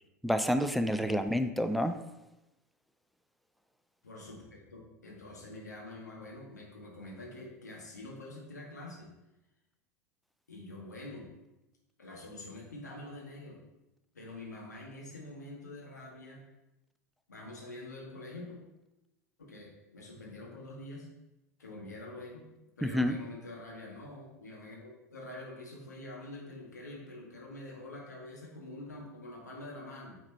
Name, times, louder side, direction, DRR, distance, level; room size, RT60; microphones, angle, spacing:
voice 1, 0.2-2.0 22.8-23.1, equal, ahead, 8 dB, 0.5 m, -28 dB
voice 2, 4.0-9.1 10.5-11.3 12.0-13.6 14.1-16.4 17.3-18.6 19.4-21.1 21.6-22.5 22.8-30.2, left 2 dB, 80° left, -2 dB, 1.8 m, -46 dB
8.7 x 4.2 x 4.4 m, 0.95 s
figure-of-eight pair, 80°, 9 cm